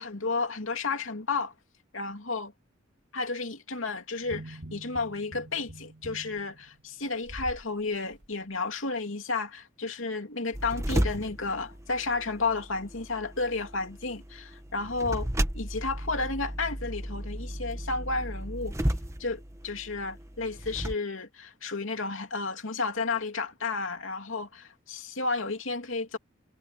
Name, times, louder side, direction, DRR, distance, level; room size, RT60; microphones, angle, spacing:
voice 1, 0.0-1.5 1.9-2.5 3.1-15.3 15.5-18.7 19.2-26.2, left 3 dB, 80° left, 2.8 m, -32 dB
sound 1, 4.2-7.7 8.1-8.3, right 1 dB, 60° right, 3.2 m, -44 dB
sound 2, 10.5-20.9, equal, 15° right, 1.4 m, -34 dB
head